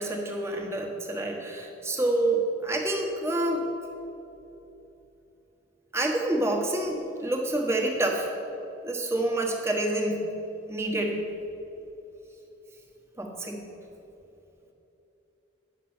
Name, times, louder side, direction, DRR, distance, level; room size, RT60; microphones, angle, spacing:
voice 1, 0.0-3.7 5.9-8.3 8.8-10.3 10.7-11.3 13.2-13.7, right 1 dB, 15° right, 1 dB, 1.2 m, -28 dB
10.0 x 6.7 x 7.1 m, 3.0 s
head